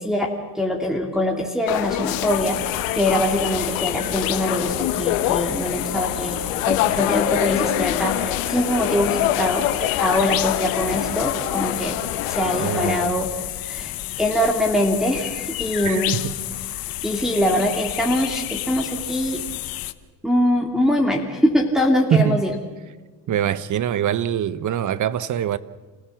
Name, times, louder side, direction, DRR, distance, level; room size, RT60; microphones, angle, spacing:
voice 1, 0.0-6.4 6.7-12.0 12.3-13.3 13.6-16.2 17.0-19.4 20.2-22.5, left 1 dB, ahead, 3.0 m, -23 dB
sound 1, 1.7-13.1, left 12 dB, 85° left, 1.4 m, -25 dB
sound 2, 2.3-19.9, left 15 dB, 60° left, 1.1 m, -31 dB
voice 2, 12.6-13.2 15.8-16.3 22.1-22.4 23.3-25.6, right 9 dB, 50° right, 1.2 m, -23 dB
28.5 x 16.5 x 7.3 m
supercardioid pair, 75°, 39 cm